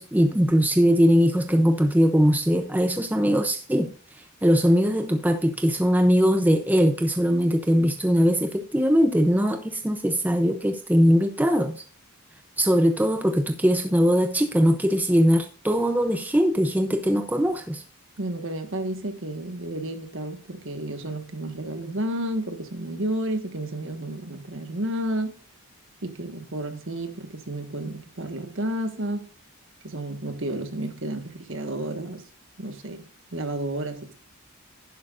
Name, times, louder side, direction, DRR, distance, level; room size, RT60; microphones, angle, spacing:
voice 1, 0.0-3.9 4.4-11.8 12.6-17.8, equal, 10° right, 0.6 m, -21 dB
voice 2, 18.2-25.4 26.0-29.3 29.8-32.2 32.6-33.0 33.3-34.1, right 1 dB, 60° right, 1.5 m, -31 dB
11.0 x 10.5 x 2.5 m
head